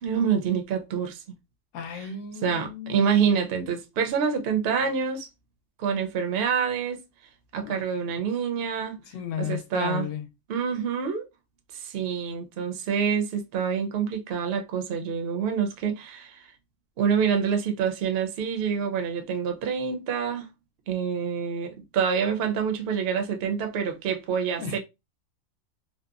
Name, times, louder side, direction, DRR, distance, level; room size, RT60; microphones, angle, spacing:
voice 1, 0.0-1.2 1.9-2.1 2.4-5.3 5.8-7.0 7.5-9.0 9.4-10.1 10.5-11.3 11.7-16.5 17.0-20.5 20.9-24.8, right 7 dB, 60° right, 0.7 m, -27 dB
voice 2, 1.7-3.1 7.6-7.8 9.0-10.3 24.6-24.8, left 7 dB, 75° left, 0.9 m, -34 dB
2.8 x 2.1 x 2.4 m
omnidirectional pair, 1.4 m